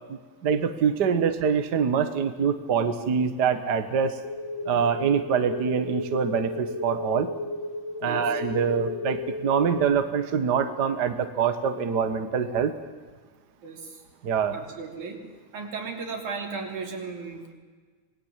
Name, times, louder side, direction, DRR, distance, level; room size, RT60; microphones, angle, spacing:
voice 1, 0.1-4.2 4.6-7.3 8.0-12.7 14.2-14.6, right 7 dB, 45° right, 8 dB, 1.4 m, -25 dB
sound 1, 4.2-9.8, left 3 dB, 60° left, 3.4 m, -33 dB
voice 2, 8.0-8.4 13.6-14.0 14.5-15.2 15.5-17.5, right 4 dB, 85° right, 1 dB, 4.7 m, -35 dB
26.0 x 20.0 x 7.5 m, 1.5 s
omnidirectional pair, 3.3 m